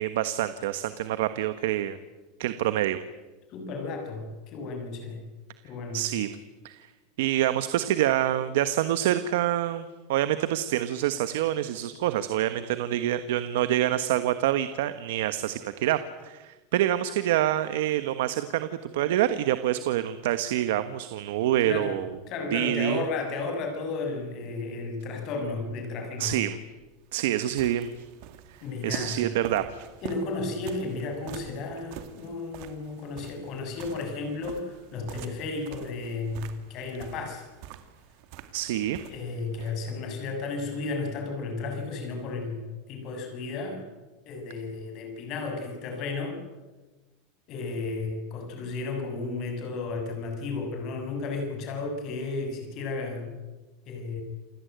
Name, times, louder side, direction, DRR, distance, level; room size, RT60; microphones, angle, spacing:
voice 1, 0.0-2.0 2.4-3.0 5.9-6.4 6.6-6.9 7.2-22.1 22.5-23.0 26.2-26.6 27.1-28.1 28.8-29.8 38.5-39.0 39.6-39.7, right 12 dB, 75° right, 11 dB, 1.3 m, -26 dB
voice 2, 3.5-5.2 5.6-6.0 21.6-22.0 22.3-26.4 28.6-29.2 30.0-37.5 39.1-42.6 42.9-43.8 44.3-46.4 47.5-53.4 53.9-54.2, left 3 dB, 35° left, 4 dB, 7.0 m, -33 dB
sound 1, 26.8-39.8, right 10 dB, 50° right, 2.3 m, -45 dB
28.5 x 17.0 x 9.4 m, 1.2 s
supercardioid pair, 170°, 0 cm